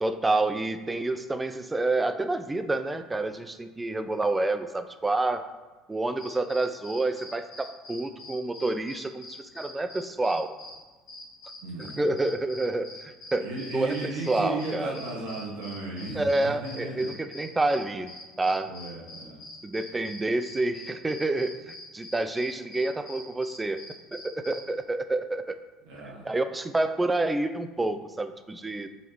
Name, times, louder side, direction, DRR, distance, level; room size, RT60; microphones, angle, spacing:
voice 1, 0.0-5.5 5.9-10.5 11.8-15.0 16.1-18.7 19.6-23.8 24.1-25.6 26.2-28.9, right 2 dB, 15° right, 9 dB, 0.3 m, -28 dB
sound 1, 6.2-10.8 11.1-24.8, left 2 dB, 50° left, 1.3 m, -45 dB
voice 2, 11.6-12.1 13.4-17.1 18.7-19.4 25.9-26.3, right 2 dB, 70° right, -5 dB, 0.9 m, -35 dB
5.1 x 3.2 x 3.0 m, 1.2 s
figure-of-eight pair, 60°, 0 cm